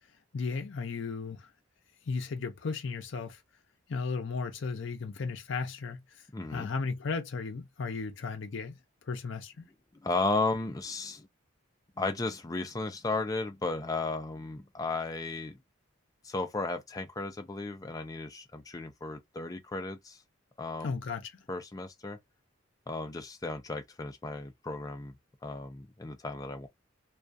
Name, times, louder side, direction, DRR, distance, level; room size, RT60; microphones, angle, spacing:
voice 1, 0.3-1.5 2.1-3.4 3.9-6.0 6.5-8.8 9.1-9.7 20.8-21.2, left 4 dB, 65° left, 0.5 m, -35 dB
voice 2, 6.3-6.7 9.9-11.3 12.0-15.6 16.2-20.2 20.6-20.9 21.5-22.2 22.9-25.1 25.4-26.7, left 3 dB, 20° left, 0.4 m, -34 dB
2.3 x 2.3 x 2.5 m
head